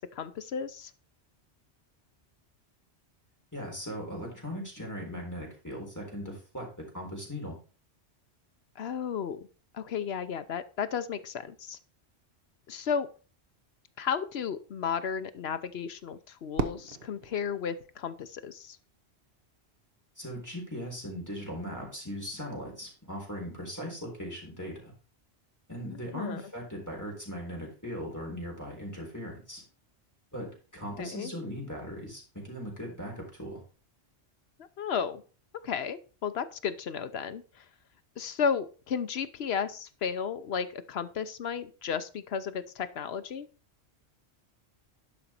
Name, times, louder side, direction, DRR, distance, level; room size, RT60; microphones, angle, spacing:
voice 1, 0.1-0.9 8.8-9.5 9.7-11.8 12.7-13.1 14.0-18.8 25.9-26.4 31.0-31.3 34.8-35.2 35.6-37.4 38.2-43.5, left 7 dB, 65° left, 11 dB, 1.0 m, -33 dB
voice 2, 3.5-6.7 6.9-7.6 20.2-24.9 25.7-29.6 30.3-30.5 30.7-33.6, equal, 15° left, -1 dB, 3.7 m, -39 dB
Fireworks, 16.5-18.8, right 6 dB, 60° right, 1.1 m, -37 dB
11.5 x 5.2 x 4.3 m, 0.36 s
omnidirectional pair, 1.2 m